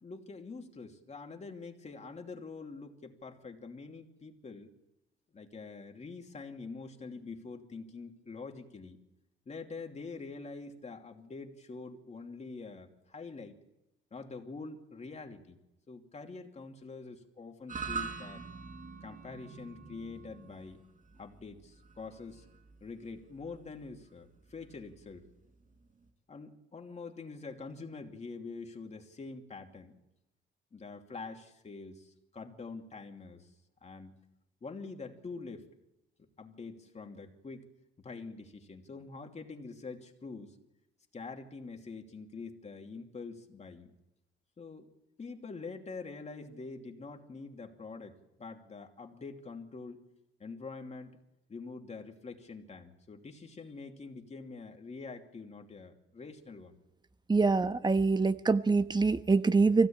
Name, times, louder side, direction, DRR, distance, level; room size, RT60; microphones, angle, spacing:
voice 1, 0.0-4.7 5.3-9.0 9.5-13.6 14.1-15.6 15.9-18.4 19.0-20.8 21.2-22.4 22.8-25.2 26.3-30.0 30.7-33.5 33.8-34.1 34.6-35.7 36.4-37.7 38.0-40.6 41.1-43.9 44.6-44.9 45.2-50.0 50.4-51.2 51.5-56.8, left 4 dB, 35° left, 3 dB, 2.7 m, -45 dB
sound 1, 17.7-26.1, right 5 dB, 45° right, 5.5 m, -45 dB
voice 2, 57.3-59.9, right 4 dB, 20° right, 11 dB, 1.2 m, -25 dB
24.0 x 17.0 x 8.8 m, 0.93 s
cardioid pair, 90°, 20 cm